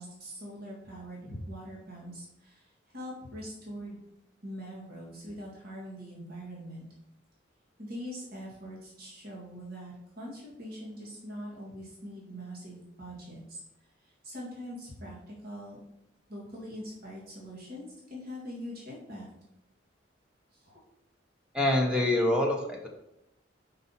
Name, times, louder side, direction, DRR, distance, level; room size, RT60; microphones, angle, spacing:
voice 1, 0.0-2.7 2.9-4.0 4.4-6.9 7.8-13.6 14.2-15.8 16.3-19.3 20.6-20.8, equal, 55° right, -5 dB, 2.0 m, -42 dB
voice 2, 21.5-22.9, left 1 dB, 5° right, 1 dB, 0.8 m, -25 dB
5.4 x 5.3 x 4.1 m, 0.83 s
head